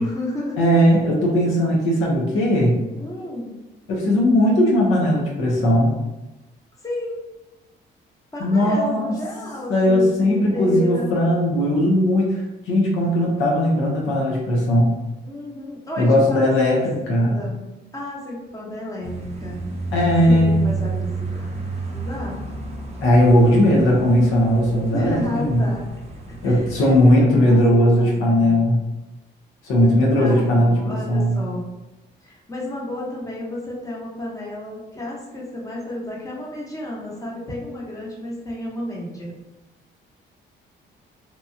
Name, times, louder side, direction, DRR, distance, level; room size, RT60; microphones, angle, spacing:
voice 1, 0.0-0.6 3.0-3.5 6.8-7.2 8.3-11.2 15.2-19.6 20.3-21.6 21.9-22.6 24.9-26.0 26.3-28.6 30.1-31.6 32.2-39.3, left 1 dB, 15° left, -4 dB, 0.9 m, -32 dB
voice 2, 0.6-2.8 3.9-5.9 8.4-9.1 9.7-12.4 12.7-14.9 16.0-17.4 19.9-20.7 23.0-25.7 26.4-28.8 29.6-31.4, equal, 85° left, -3 dB, 0.8 m, -18 dB
sound 1, 19.0-27.1, right 3 dB, 30° right, 0.6 m, -31 dB
2.9 x 2.3 x 2.7 m, 1.0 s
cardioid pair, 90°, 20 cm